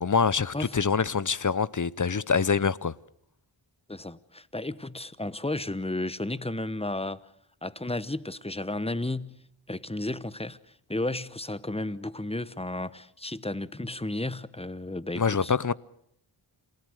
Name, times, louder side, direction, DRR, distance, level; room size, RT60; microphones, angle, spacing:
voice 1, 0.0-2.9 15.2-15.7, left 5 dB, 40° left, 0.8 m, -25 dB
voice 2, 3.9-7.3 7.6-10.6 10.9-15.5, left 2 dB, 10° left, 1.1 m, -33 dB
28.0 x 18.0 x 6.5 m
cardioid pair, 40°, 49 cm